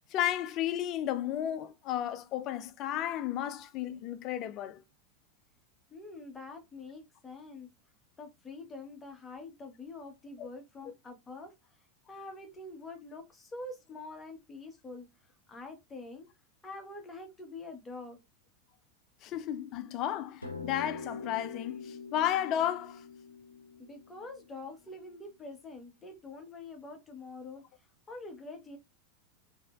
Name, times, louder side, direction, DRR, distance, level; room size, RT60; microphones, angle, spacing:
voice 1, 0.1-4.8 10.4-10.5 19.2-23.0, left 11 dB, 40° left, 0.4 m, -33 dB
voice 2, 5.9-7.7 8.2-11.5 12.1-15.1 15.5-16.3 16.6-18.2 23.8-27.6 28.1-28.8, left 2 dB, 20° left, 1.0 m, -45 dB
sound 1, 20.4-25.1, left 4 dB, 90° left, 0.6 m, -45 dB
3.1 x 2.9 x 2.2 m
figure-of-eight pair, 85°, 0 cm